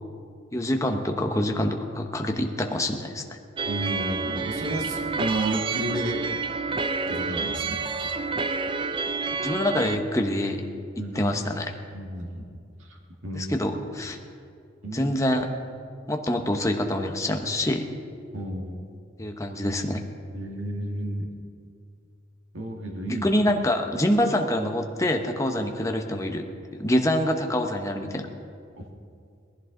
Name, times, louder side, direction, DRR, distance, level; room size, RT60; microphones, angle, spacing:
voice 1, 0.5-3.4 9.4-10.6 11.0-11.7 13.3-14.2 14.9-15.5 16.1-17.9 19.2-20.0 23.1-26.5 26.7-28.2, left 1 dB, 15° left, 3 dB, 1.0 m, -26 dB
sound 1, 3.6-10.0, right 4 dB, 25° right, 0.4 m, -29 dB
voice 2, 3.7-6.2 7.1-7.8 11.0-11.2 11.9-12.5 13.2-13.6 14.8-15.2 18.3-18.9 20.3-21.3 22.5-23.3, right 1 dB, 90° right, 1 dB, 1.9 m, -31 dB
19.5 x 15.0 x 3.9 m, 2.3 s
head